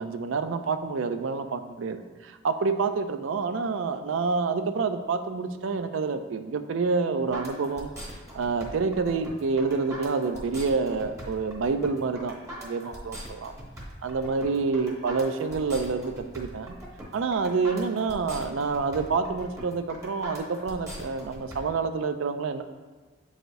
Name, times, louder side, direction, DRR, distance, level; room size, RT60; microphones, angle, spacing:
voice 1, 0.0-7.9 8.3-12.3 12.6-13.5 14.0-16.8 17.1-22.6, right 4 dB, 75° right, 9 dB, 0.4 m, -28 dB
sound 1, 7.3-21.6, equal, 15° right, 1.1 m, -41 dB
7.5 x 4.9 x 2.6 m, 1.3 s
head